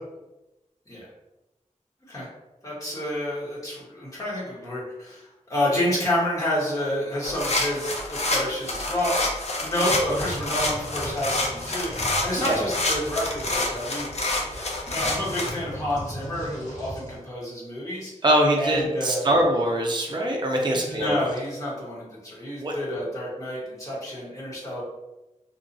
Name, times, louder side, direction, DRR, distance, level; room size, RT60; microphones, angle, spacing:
voice 1, 2.6-14.1 14.5-14.6 14.9-18.1 18.5-19.4 20.7-24.8, left 1 dB, 25° left, -7 dB, 1.3 m, -29 dB
sound 1, 7.2-15.5, left 2 dB, 55° left, 0.5 m, -28 dB
sound 2, 9.8-17.2, equal, 70° left, 1.3 m, -39 dB
voice 2, 18.2-21.2 22.6-22.7, right 1 dB, 35° right, 0 dB, 0.5 m, -23 dB
2.8 x 2.4 x 2.6 m, 1.0 s
wide cardioid pair, 55°, 13 cm